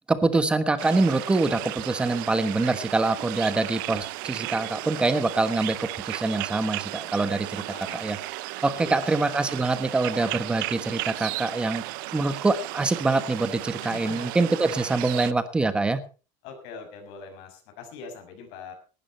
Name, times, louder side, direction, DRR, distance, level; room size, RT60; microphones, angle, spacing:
voice 1, 0.1-7.6 7.9-8.2 8.6-11.8 12.1-16.0, right 3 dB, 10° right, 12 dB, 1.3 m, -25 dB
sound 1, 0.8-15.3, right 20 dB, 85° right, 0.7 m, -35 dB
voice 2, 7.5-8.1 8.7-9.1 13.8-14.3 16.4-18.7, left 5 dB, 60° left, 4 dB, 6.4 m, -42 dB
18.5 x 12.5 x 4.3 m, 0.35 s
cardioid pair, 170°, 11 cm